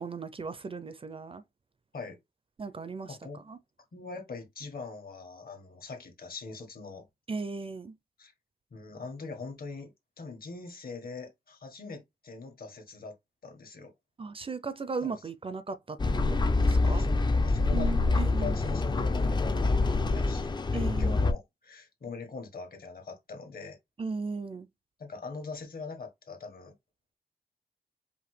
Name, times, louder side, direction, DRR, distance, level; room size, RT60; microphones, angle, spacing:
voice 1, 0.0-1.4 2.6-3.6 7.3-8.0 14.2-17.1 17.7-18.6 20.7-21.4 24.0-24.7, right 4 dB, 35° right, 0.4 m, -37 dB
voice 2, 3.1-3.4 3.9-7.0 8.2-8.3 8.7-9.9 10.2-13.1 13.4-13.9 15.0-15.2 16.8-23.8 25.0-26.7, left 4 dB, 65° left, 1.4 m, -42 dB
sound 1, 16.0-21.3, left 3 dB, 25° left, 0.4 m, -26 dB
5.0 x 2.6 x 3.2 m
wide cardioid pair, 135°, 17 cm